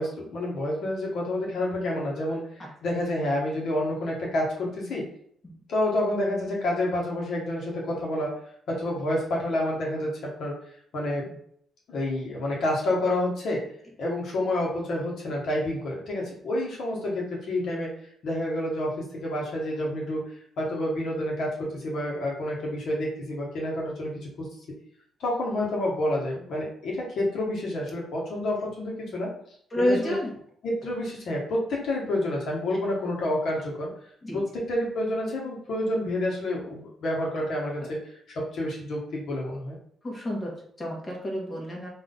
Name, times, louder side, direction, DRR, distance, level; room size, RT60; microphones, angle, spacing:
voice 1, 0.0-5.1 5.7-8.3 8.7-10.5 10.9-11.2 11.9-13.6 14.0-17.9 18.2-20.2 20.6-24.5 25.2-29.3 29.8-30.2 30.6-33.9 34.3-38.0 38.4-39.8, left 1 dB, 65° left, -3 dB, 1.8 m, -29 dB
voice 2, 29.7-30.3 34.2-34.4 37.8-37.9 40.0-41.9, equal, 30° left, -2 dB, 1.8 m, -29 dB
3.8 x 3.4 x 4.0 m, 0.65 s
cardioid pair, 90°, 0 cm